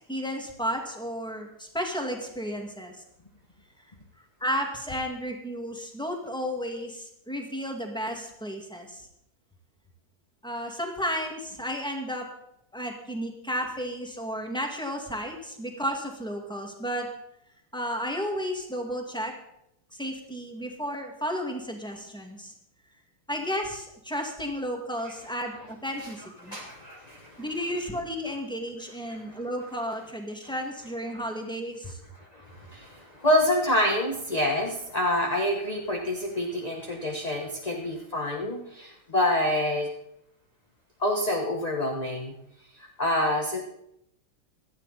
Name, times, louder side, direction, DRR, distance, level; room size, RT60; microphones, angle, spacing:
voice 1, 0.1-3.0 4.4-9.1 10.4-12.3 12.7-17.1 17.7-19.3 19.9-22.5 23.3-26.6 27.4-32.0, equal, ahead, 2 dB, 1.9 m, -33 dB
voice 2, 26.4-27.4 29.1-29.4 32.3-39.9 41.0-42.3 43.0-43.6, left 1 dB, 25° left, 1 dB, 0.9 m, -27 dB
17.5 x 12.5 x 4.2 m, 0.78 s
omnidirectional pair, 2.3 m